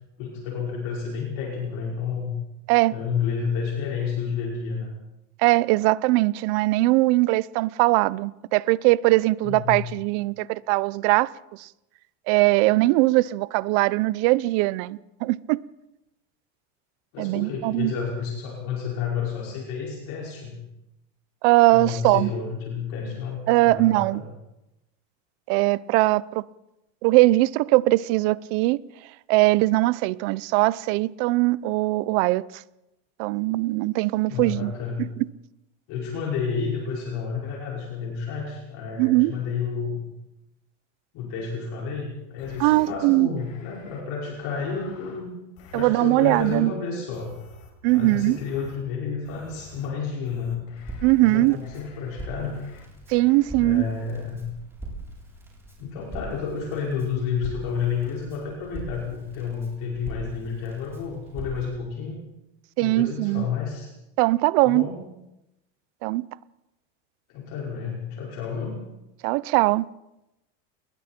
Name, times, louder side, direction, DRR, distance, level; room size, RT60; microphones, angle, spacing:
voice 1, 0.2-2.3 2.9-4.9 9.4-9.8 17.1-20.5 21.7-24.3 34.3-35.0 35.9-40.0 41.1-45.3 45.7-47.3 47.9-50.7 51.2-52.6 53.6-54.5 55.8-62.2 62.8-63.9 64.6-65.0 67.3-68.7, left 6 dB, 55° left, 5.5 m, -30 dB
voice 2, 5.4-11.7 12.3-15.6 17.2-17.9 21.4-22.3 23.5-24.2 25.5-26.4 27.0-28.8 29.3-32.6 33.2-34.7 35.0-35.3 39.0-39.3 42.6-43.3 45.7-46.7 47.8-48.4 51.0-51.6 53.1-53.8 62.8-63.5 64.2-64.9 66.0-66.3 69.2-69.9, right 20 dB, 55° right, 0.8 m, -21 dB
sound 1, 42.4-42.9 43.4-44.0 44.3-45.2 45.6-45.9 46.2-46.6 47.1-48.8 49.2-49.9 50.2-51.1 51.6-52.3 52.5-52.8 53.2-53.5, left 5 dB, 75° left, 6.8 m, -49 dB
Crackle, 50.8-61.7, right 2 dB, 5° right, 7.3 m, -41 dB
29.5 x 21.5 x 4.5 m
supercardioid pair, 155°, 39 cm